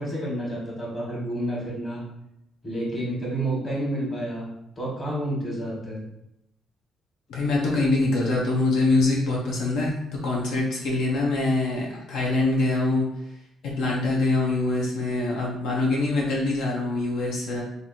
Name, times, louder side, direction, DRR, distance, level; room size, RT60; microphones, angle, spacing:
voice 1, 0.0-2.0 2.6-4.5 4.8-6.0, right 1 dB, 25° left, -5 dB, 1.5 m, -29 dB
voice 2, 7.3-13.1 13.6-17.6, left 2 dB, 80° left, -3 dB, 0.8 m, -24 dB
2.9 x 2.6 x 4.1 m, 0.82 s
cardioid pair, 130°, 0 cm